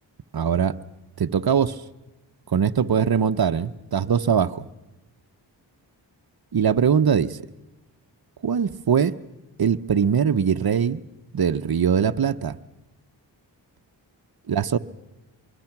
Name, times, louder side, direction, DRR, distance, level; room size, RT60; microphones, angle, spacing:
voice 1, 0.3-0.7 1.2-1.8 2.5-4.6 6.5-7.4 8.4-9.2 9.6-11.0 11.3-12.6 14.5-14.8, right 7 dB, 50° right, 12 dB, 0.9 m, -21 dB
25.0 x 24.0 x 6.0 m, 1.0 s
cardioid pair, 50°, 46 cm